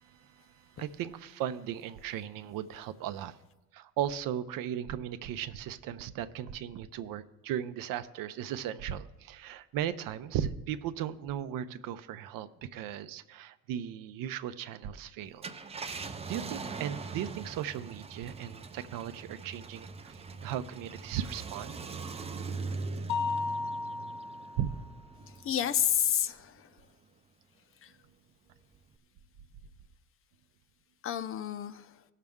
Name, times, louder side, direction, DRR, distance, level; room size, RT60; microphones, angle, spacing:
voice 1, 0.0-3.4 3.7-15.4 15.9-21.8 24.6-24.7, right 10 dB, 75° right, 13 dB, 0.6 m, -37 dB
Car, 15.3-26.1 26.6-26.7 28.7-29.0, right 4 dB, 20° right, 0.4 m, -41 dB
Mallet percussion, 23.1-24.9, left 4 dB, 80° left, 0.7 m, -34 dB
voice 2, 25.3-26.9 27.8-27.9 31.0-32.0, left 10 dB, 40° left, 13 dB, 0.5 m, -31 dB
17.0 x 6.5 x 3.6 m, 1.0 s
cardioid pair, 135°, 34 cm